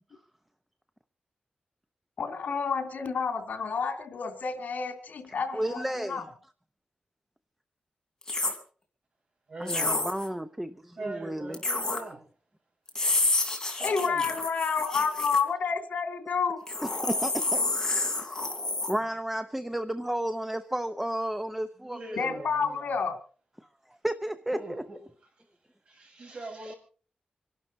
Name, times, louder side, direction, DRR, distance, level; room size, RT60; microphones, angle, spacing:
voice 1, 2.2-6.2 13.8-16.6 22.2-23.2, left 5 dB, 80° left, 3.0 m, -29 dB
voice 2, 5.5-6.3 9.6-11.6 16.8-17.7 18.2-18.4 18.9-22.3 23.6-23.7 24.0-24.6, right 1 dB, 5° right, 0.7 m, -32 dB
sound 1, 8.2-8.6 9.7-10.3 11.5-12.0 12.9-15.4 16.7-18.9, left 2 dB, 20° left, 3.3 m, -29 dB
voice 3, 9.5-9.9 11.0-12.3 13.8-14.3 21.8-23.1 24.5-25.0 25.9-26.7, right 2 dB, 50° right, 7.2 m, -41 dB
26.5 x 12.0 x 4.2 m
wide cardioid pair, 170°, 3 cm